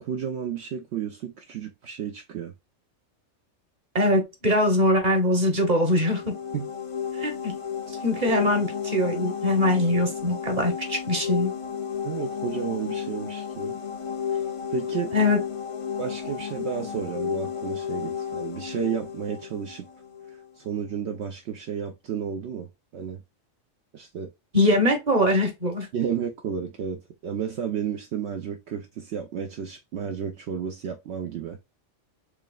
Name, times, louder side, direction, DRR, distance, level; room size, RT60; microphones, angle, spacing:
voice 1, 0.0-2.5 6.5-6.7 12.0-13.8 14.3-14.4 14.7-15.2 16.0-19.9 20.3-22.7 22.9-23.2 23.9-24.3 25.9-31.6, right 7 dB, 65° right, 0.8 m, -32 dB
voice 2, 3.9-6.2 7.2-7.5 8.0-11.5 15.1-15.4 24.5-25.9, left 1 dB, 35° right, 1.2 m, -22 dB
sound 1, 5.8-20.5, left 8 dB, 45° left, 0.4 m, -32 dB
4.7 x 3.2 x 2.3 m
omnidirectional pair, 1.3 m